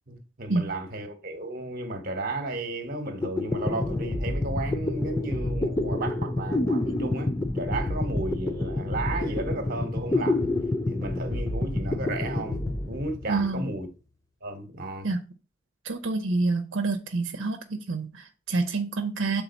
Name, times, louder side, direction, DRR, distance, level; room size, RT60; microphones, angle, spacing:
voice 1, 0.1-10.5 10.9-13.9 14.4-15.1, right 2 dB, 50° right, 1.1 m, -33 dB
sound 1, 2.9-3.0 3.2-13.7, left 2 dB, 15° left, 0.4 m, -28 dB
voice 2, 13.3-13.7 15.0-15.2 15.8-19.4, right 3 dB, 85° right, 0.7 m, -27 dB
7.2 x 3.8 x 4.1 m
head